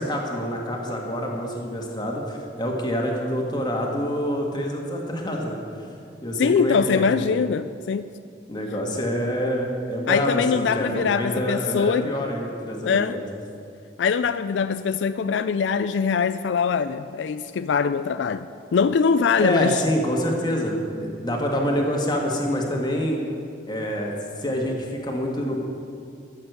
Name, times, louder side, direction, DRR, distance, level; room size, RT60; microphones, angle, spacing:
voice 1, 0.0-5.6 6.2-7.0 8.5-13.3 19.4-23.2 23.7-25.6, equal, 25° left, 0 dB, 1.7 m, -26 dB
voice 2, 6.4-8.1 10.1-12.1 12.8-13.2 14.0-18.5 18.7-19.8, left 6 dB, 80° left, 12 dB, 0.4 m, -22 dB
14.0 x 6.6 x 8.0 m, 2.4 s
head